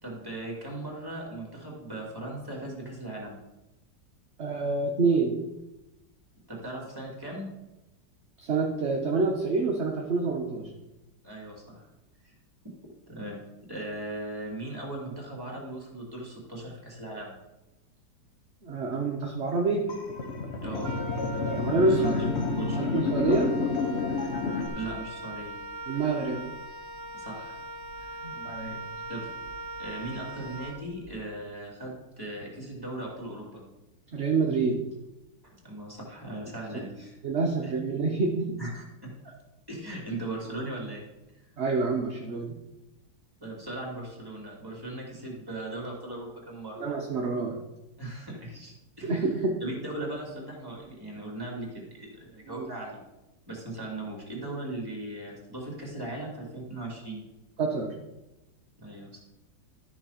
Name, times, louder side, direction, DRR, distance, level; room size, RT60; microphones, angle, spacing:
voice 1, 0.0-3.4 6.5-7.5 11.2-11.9 12.2-12.3 13.1-13.4 13.7-17.3 20.6-20.9 21.8-22.3 22.6-22.9 24.7-25.5 27.1-27.6 28.0-28.2 29.1-29.2 29.8-33.6 35.4-37.2 37.6-37.7 38.6-39.1 39.7-41.0 43.4-46.8 48.0-49.2 49.6-53.0 53.5-57.2 58.8-59.2, right 1 dB, 10° right, -2 dB, 2.6 m, -38 dB
voice 2, 4.4-5.4 8.4-10.7 18.6-19.9 21.4-22.1 22.8-23.5 25.9-26.5 28.2-28.8 34.1-34.8 37.2-38.5 41.6-42.5 46.8-47.6 49.0-49.5 52.5-52.7 57.6-57.9, right 4 dB, 45° right, 0 dB, 1.1 m, -27 dB
sound 1, 19.9-24.7, left 4 dB, 45° left, 0.9 m, -29 dB
Wind instrument woodwind instrument, 20.8-31.2, right 1 dB, 70° right, 1.5 m, -41 dB
13.0 x 4.6 x 5.8 m, 1.0 s
omnidirectional pair, 2.0 m